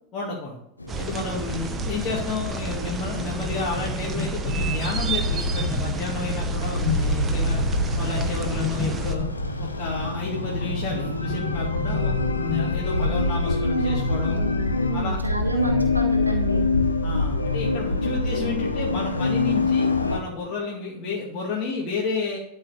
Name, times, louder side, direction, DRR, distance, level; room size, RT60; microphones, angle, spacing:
voice 1, 0.1-0.6 1.0-7.6 8.0-9.3 9.6-14.4 14.9-15.2 17.0-22.4, left 4 dB, 30° left, -4 dB, 2.1 m, -31 dB
sound 1, 0.8-20.2, left 3 dB, 80° left, 1.0 m, -26 dB
sound 2, 0.9-9.2, right 4 dB, 20° right, 0.8 m, -31 dB
sound 3, 3.0-13.1, left 3 dB, 10° left, 1.5 m, -34 dB
voice 2, 13.6-16.7, right 2 dB, 85° right, 3 dB, 1.1 m, -29 dB
12.0 x 4.5 x 6.3 m, 0.79 s
figure-of-eight pair, 90°, 0 cm